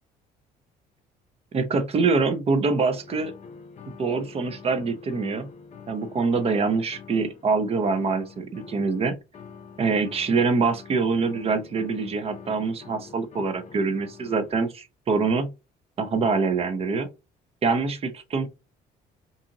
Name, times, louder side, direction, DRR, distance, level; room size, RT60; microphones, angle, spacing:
voice 1, 1.5-3.3 4.0-5.5 5.9-9.2 9.8-15.5 16.0-17.1 17.6-18.5, right 4 dB, 35° right, 0.6 m, -24 dB
sound 1, 2.8-14.5, left 5 dB, 40° left, 0.6 m, -46 dB
2.6 x 2.4 x 2.8 m
cardioid pair, 110°, 17 cm